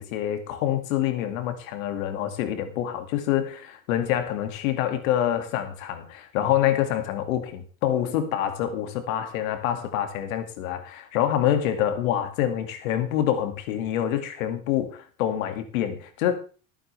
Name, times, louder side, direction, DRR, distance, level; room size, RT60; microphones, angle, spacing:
voice 1, 0.0-16.3, left 11 dB, 85° left, 2.4 m, -26 dB
20.0 x 9.0 x 3.4 m
supercardioid pair, 120°, 40 cm